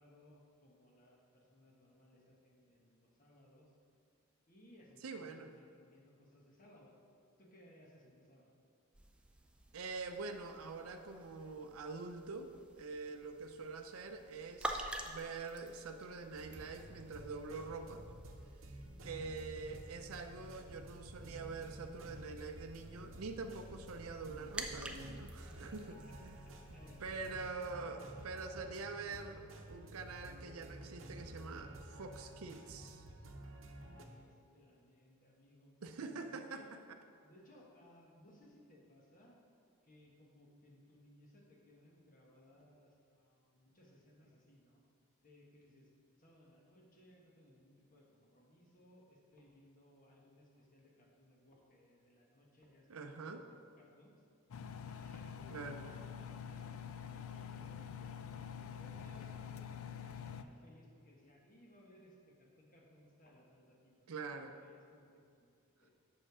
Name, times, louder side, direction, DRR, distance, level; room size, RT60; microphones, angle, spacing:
voice 1, 0.0-3.7 4.5-7.0 7.4-8.5 25.3-27.4 33.8-36.7 37.2-39.4 39.8-44.8 45.2-45.9 46.2-54.2 54.8-56.1 56.4-59.7 60.0-65.9, left 1 dB, 40° left, -2 dB, 1.3 m, -63 dB
voice 2, 5.0-5.5 9.7-18.0 19.0-26.5 27.0-33.1 35.8-36.6 52.9-53.4 55.5-55.8 64.1-64.6, right 4 dB, 85° right, 6 dB, 0.5 m, -45 dB
sound 1, 8.9-27.5, right 1 dB, 5° right, 0.4 m, -50 dB
sound 2, 16.3-34.1, right 1 dB, 65° right, 0.8 m, -52 dB
Engine, 54.5-60.4, left 7 dB, 75° left, 0.4 m, -46 dB
7.6 x 6.5 x 4.8 m, 2.4 s
head